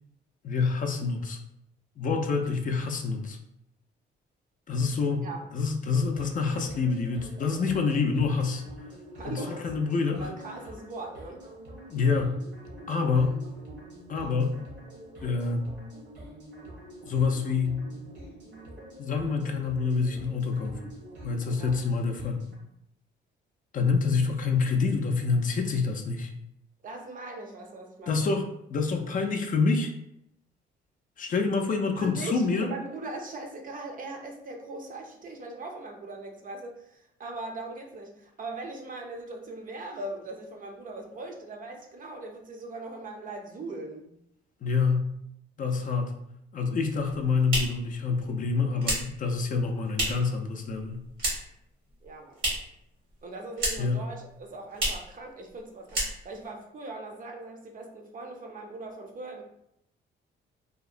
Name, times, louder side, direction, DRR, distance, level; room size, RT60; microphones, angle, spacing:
voice 1, 0.4-1.4 2.0-3.4 4.7-5.3 5.5-8.6 9.2-10.2 11.9-12.4 12.9-13.4 14.1-14.6 15.2-15.7 17.0-17.8 19.0-20.9 21.2-22.4 23.7-26.3 28.1-29.9 31.2-32.7 44.6-45.1 45.6-46.1 46.5-51.0 53.8-54.0, left 4 dB, 40° left, 3 dB, 0.4 m, -27 dB
sound 1, 6.0-22.6, right 1 dB, 60° right, 0.9 m, -46 dB
voice 2, 9.1-9.7 10.1-11.4 21.6-21.8 26.8-28.3 32.0-44.1 52.0-52.4 53.2-59.4, right 2 dB, 45° right, 2 dB, 0.5 m, -40 dB
sound 2, 46.9-50.4 50.7-51.6 51.9-52.8 53.1-54.0 54.3-54.4 54.7-55.1 55.5-55.6 55.9-56.5, right 1 dB, 90° right, 1.3 m, -31 dB
2.7 x 2.0 x 2.4 m, 0.77 s
cardioid pair, 90°, 20 cm